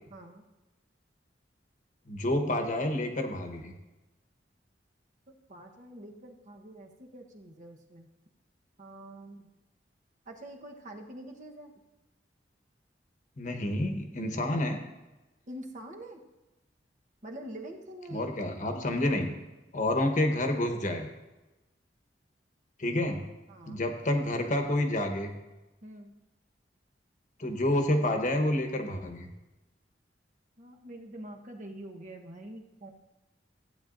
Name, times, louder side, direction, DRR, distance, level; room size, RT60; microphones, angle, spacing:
voice 1, 0.1-0.4 5.3-8.1 8.8-9.5 10.3-11.7 15.5-16.2 17.2-19.1 23.5-23.8 25.8-26.1 30.6-32.9, right 1 dB, 45° right, 2 dB, 1.1 m, -45 dB
voice 2, 2.1-3.7 13.4-14.8 18.1-19.3 19.7-21.1 22.8-23.3 23.7-25.4 27.4-29.3, left 1 dB, 45° left, 5 dB, 1.1 m, -29 dB
14.5 x 8.8 x 2.6 m, 1.1 s
head